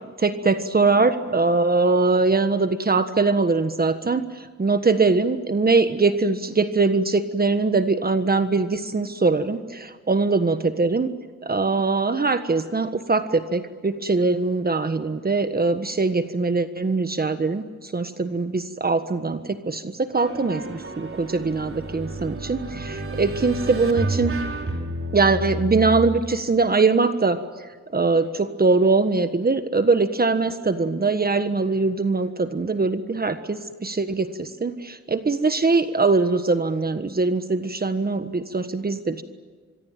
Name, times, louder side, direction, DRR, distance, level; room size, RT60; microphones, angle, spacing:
voice 1, 0.2-11.1 11.4-24.3 25.1-27.4 27.9-39.2, right 3 dB, 30° right, 9 dB, 1.5 m, -22 dB
sound 1, 20.1-26.0, right 1 dB, 45° right, 4.4 m, -31 dB
25.5 x 23.0 x 9.1 m, 1.5 s
cardioid pair, 95°, 29 cm